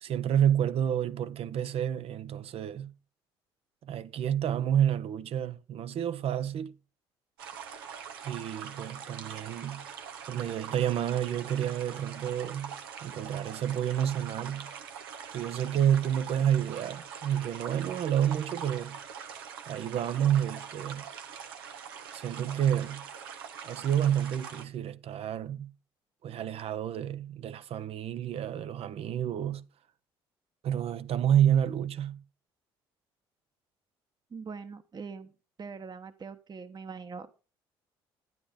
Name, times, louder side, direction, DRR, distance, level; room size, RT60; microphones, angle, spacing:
voice 1, 0.0-2.9 3.8-6.8 8.2-9.9 10.3-14.7 15.3-19.0 19.7-21.0 22.1-23.0 23.6-25.7 26.2-29.6 30.6-32.2, right 10 dB, 55° right, 1.0 m, -29 dB
sound 1, 7.4-24.7, right 7 dB, 90° right, 1.2 m, -43 dB
voice 2, 34.3-35.3 35.6-37.4, right 5 dB, 35° right, 1.2 m, -42 dB
12.5 x 9.9 x 5.1 m
hypercardioid pair, 55°, 12 cm